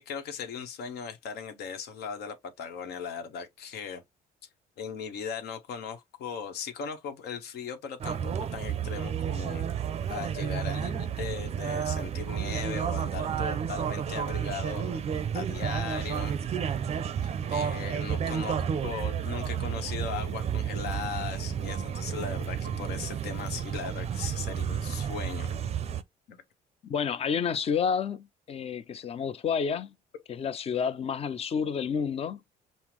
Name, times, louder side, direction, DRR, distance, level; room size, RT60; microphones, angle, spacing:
voice 1, 0.0-4.0 4.8-9.7 10.1-15.0 15.3-16.3 17.2-25.5 26.3-26.4, left 6 dB, 75° left, 1.0 m, -38 dB
sound 1, 8.0-26.0, right 8 dB, 40° right, 0.5 m, -31 dB
voice 2, 26.8-29.9 30.3-32.4, left 6 dB, 35° left, 0.5 m, -30 dB
5.6 x 2.0 x 3.0 m
cardioid pair, 110°, 17 cm